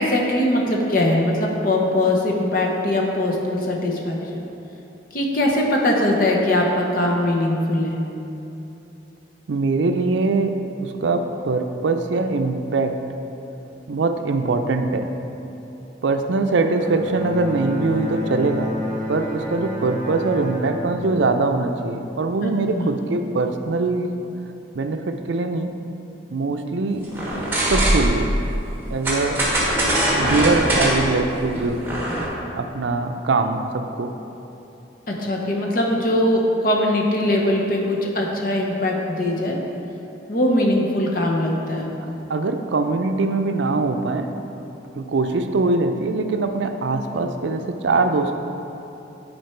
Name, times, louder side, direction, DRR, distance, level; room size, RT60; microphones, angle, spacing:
voice 1, 0.0-4.2 5.1-8.0 22.4-22.9 35.1-39.6 40.3-42.1, left 1 dB, 50° left, -1 dB, 0.9 m, -21 dB
voice 2, 9.5-10.5 10.8-13.0 13.9-15.1 16.0-18.7 19.1-24.1 24.7-25.7 26.3-27.1 27.7-28.4 28.9-29.4 30.2-31.8 32.6-34.1 42.3-44.4 45.0-48.4, right 3 dB, 80° right, 6 dB, 0.5 m, -22 dB
Bowed string instrument, 16.8-22.2, left 1 dB, 25° left, 1.5 m, -30 dB
sound 1, 27.1-28.3 29.0-32.2, right 1 dB, 10° right, 1.2 m, -21 dB
9.5 x 4.4 x 4.5 m, 2.9 s
head